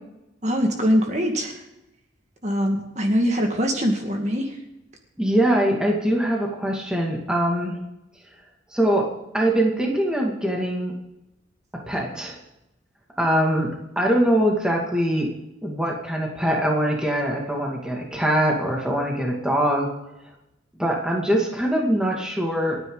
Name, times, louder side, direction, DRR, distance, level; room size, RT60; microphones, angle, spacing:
voice 1, 0.4-1.6 2.4-4.6, equal, 35° right, 2 dB, 2.0 m, -23 dB
voice 2, 5.2-7.8 8.7-10.9 11.7-12.4 13.2-15.3 15.6-19.9 20.8-22.8, right 1 dB, 5° right, -1 dB, 2.3 m, -23 dB
28.5 x 9.6 x 4.0 m, 0.90 s
head